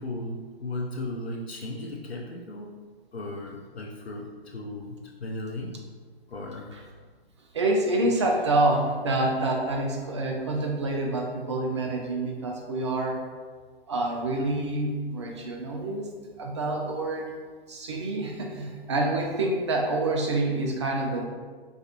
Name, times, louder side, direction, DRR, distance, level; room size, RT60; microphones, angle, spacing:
voice 1, 0.0-2.8 3.1-5.8 6.3-6.7, left 2 dB, 85° left, -2 dB, 0.5 m, -36 dB
voice 2, 7.5-13.2 13.9-16.1 16.4-17.3 17.7-21.3, right 2 dB, 30° right, 0 dB, 0.4 m, -27 dB
3.9 x 2.5 x 2.8 m, 1.5 s
figure-of-eight pair, 125°, 31 cm